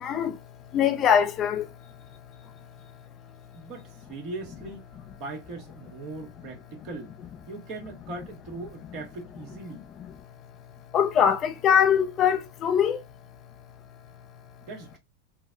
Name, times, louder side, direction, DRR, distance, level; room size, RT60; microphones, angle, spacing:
voice 1, 0.0-0.3 0.7-1.7 10.9-13.0, left 8 dB, 40° left, 0.6 m, -22 dB
voice 2, 3.5-4.8 5.1-7.1 7.5-9.8 14.6-15.0, right 3 dB, 50° right, 1.4 m, -39 dB
3.8 x 2.1 x 2.4 m
hypercardioid pair, 100°, 0 cm